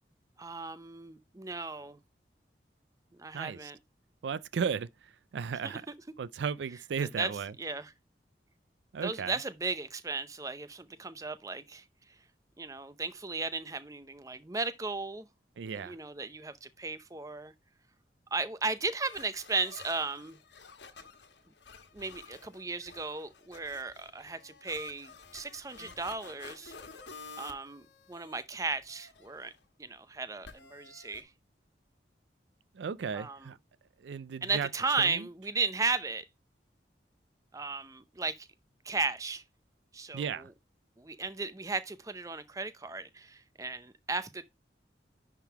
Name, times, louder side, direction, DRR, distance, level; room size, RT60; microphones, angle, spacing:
voice 1, 0.4-2.0 3.2-3.8 7.0-7.3 7.6-7.9 9.0-11.8 12.6-15.3 15.8-17.5 18.3-20.4 21.9-26.7 27.4-29.5 29.8-31.3 33.1-33.5 34.4-36.2 37.5-38.5 38.8-39.4 39.9-40.5 41.0-44.4, right 4 dB, 20° right, 0.6 m, -35 dB
voice 2, 3.3-3.7 4.2-5.8 6.2-7.5 8.9-9.4 15.6-16.0 32.7-33.6 34.0-34.7 35.0-35.3 40.1-40.5, right 6 dB, 80° right, 0.4 m, -35 dB
sound 1, 19.0-28.4 28.7-29.6 30.4-31.2, left 4 dB, 75° left, 1.4 m, -51 dB
10.5 x 3.7 x 4.6 m
head